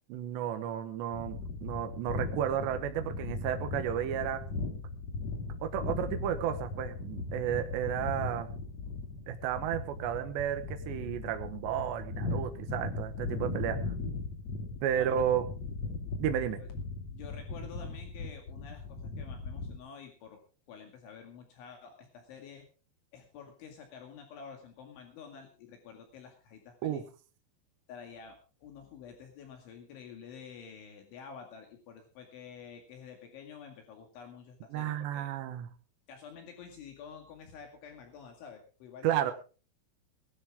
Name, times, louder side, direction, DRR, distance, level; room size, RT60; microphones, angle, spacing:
voice 1, 0.1-4.5 5.6-8.5 9.3-13.8 14.8-15.5 16.2-16.6 26.8-27.0 34.7-35.7 39.0-39.3, right 10 dB, 70° right, 7 dB, 3.0 m, -32 dB
sound 1, 1.1-19.8, left 3 dB, 40° left, 2.8 m, -38 dB
voice 2, 17.1-20.4 20.7-22.7 23.1-27.1 27.9-35.3 36.1-39.3, left 6 dB, 70° left, 4 dB, 4.4 m, -49 dB
19.5 x 12.5 x 3.7 m, 0.36 s
omnidirectional pair, 5.9 m